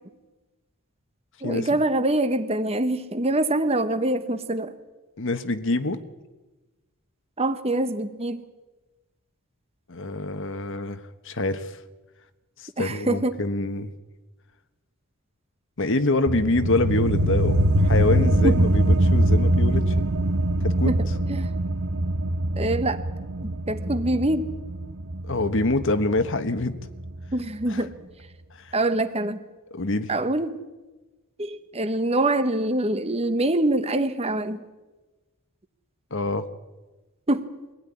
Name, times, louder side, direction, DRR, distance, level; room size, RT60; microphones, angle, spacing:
voice 1, 1.4-4.7 7.4-8.4 12.8-13.4 18.2-18.5 20.8-21.5 22.6-23.0 23.4-24.5 27.3-27.9 28.7-29.4 30.1-30.6 31.4-34.6 37.3-37.5, right 1 dB, 30° right, 11 dB, 1.2 m, -25 dB
voice 2, 5.2-6.0 9.9-11.0 11.2-11.7 12.6-13.9 15.8-19.9 20.6-20.9 25.2-26.8 27.7-27.8 28.6-28.7 29.7-30.1 36.1-36.4, left 2 dB, 60° left, 10 dB, 1.3 m, -25 dB
sound 1, 16.3-27.3, right 1 dB, 60° right, 0.9 m, -23 dB
24.0 x 16.5 x 9.9 m, 1.2 s
head